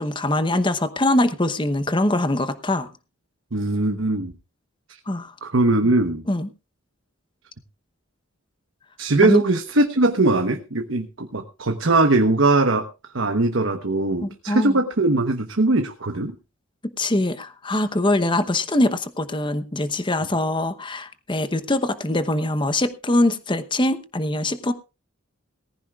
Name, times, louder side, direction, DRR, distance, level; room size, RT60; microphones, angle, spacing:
voice 1, 0.0-2.9 5.1-5.3 6.3-6.5 9.2-9.4 14.2-14.8 17.0-24.7, left 1 dB, 25° left, 11 dB, 0.9 m, -23 dB
voice 2, 3.5-4.3 5.4-6.2 9.0-12.9 13.1-16.3, right 2 dB, 70° right, 6 dB, 1.1 m, -20 dB
18.5 x 15.0 x 2.4 m, 0.29 s
head